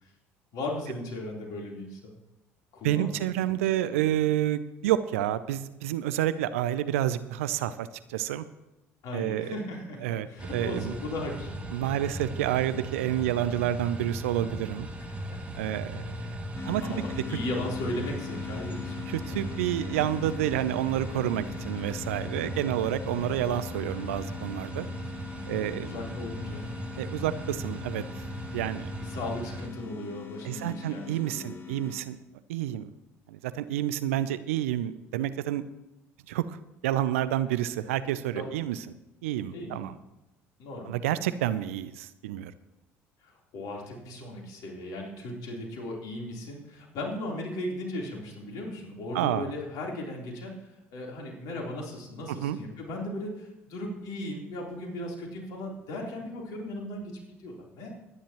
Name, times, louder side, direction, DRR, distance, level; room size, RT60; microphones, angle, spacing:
voice 1, 0.5-2.1 2.7-3.6 4.1-4.3 9.0-11.6 15.1-15.4 16.3-16.4 16.8-19.9 25.5-26.7 29.0-31.7 38.3-38.5 39.5-39.9 40.6-41.0 43.2-50.5 50.9-57.9, left 1 dB, 55° left, -1 dB, 3.6 m, -37 dB
voice 2, 2.8-8.5 9.1-9.6 10.0-10.9 11.7-14.9 15.6-16.4 16.6-17.4 19.1-24.9 25.5-25.9 27.0-28.0 28.5-28.9 30.4-32.2 32.5-32.9 33.3-35.6 36.3-36.6 36.8-38.8 39.2-39.9 40.8-42.5 49.1-49.5 52.3-52.6, right 12 dB, 70° right, 14 dB, 0.6 m, -29 dB
sound 1, 10.4-29.7, right 1 dB, 15° right, 2.5 m, -38 dB
sound 2, 16.5-32.0, left 7 dB, 35° left, 2.0 m, -42 dB
22.0 x 10.0 x 3.0 m, 0.95 s
figure-of-eight pair, 60°, 8 cm